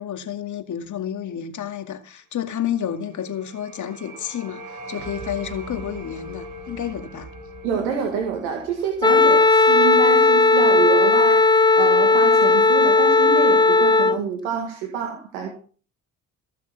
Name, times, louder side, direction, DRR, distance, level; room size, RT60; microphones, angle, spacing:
voice 1, 0.0-7.3, left 9 dB, 55° left, 2.3 m, -30 dB
sound 1, 2.7-9.8, right 2 dB, 60° right, 6.8 m, -40 dB
voice 2, 7.6-15.5, right 6 dB, 85° right, 2.0 m, -27 dB
Wind instrument woodwind instrument, 9.0-14.2, left 3 dB, 10° left, 0.7 m, -16 dB
16.0 x 6.8 x 5.9 m
hypercardioid pair, 55°, 36 cm